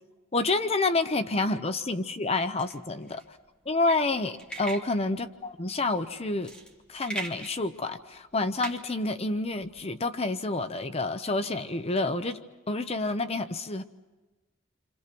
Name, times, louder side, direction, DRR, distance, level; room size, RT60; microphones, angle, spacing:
voice 1, 0.3-3.2 3.7-6.5 6.9-12.4 12.7-13.8, left 2 dB, 30° left, 10 dB, 0.8 m, -28 dB
sound 1, 2.6-9.8, right 2 dB, 5° left, 2.8 m, -42 dB
29.0 x 26.5 x 6.1 m, 1.1 s
head